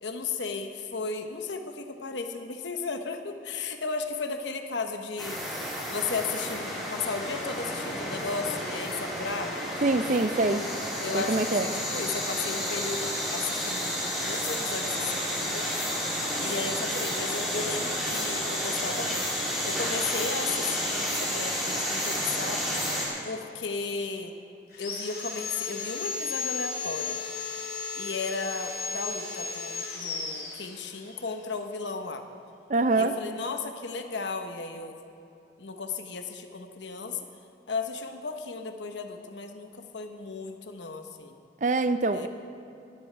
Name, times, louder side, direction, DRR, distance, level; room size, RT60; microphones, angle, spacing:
voice 1, 0.0-5.4 5.9-9.6 11.0-15.7 16.4-22.6 23.2-24.3 24.8-27.2 27.9-32.2 32.9-35.0 35.6-37.2 37.7-41.4 42.1-42.3, left 4 dB, 80° left, 6 dB, 1.0 m, -35 dB
sound 1, 5.2-23.1, equal, ahead, 2.8 m, -31 dB
voice 2, 9.8-10.7 11.1-11.7 32.7-33.1 41.6-42.3, right 2 dB, 40° right, 11 dB, 0.5 m, -24 dB
Sawing, 24.7-31.2, left 5 dB, 55° left, 2.7 m, -35 dB
18.0 x 13.0 x 3.4 m, 2.8 s
head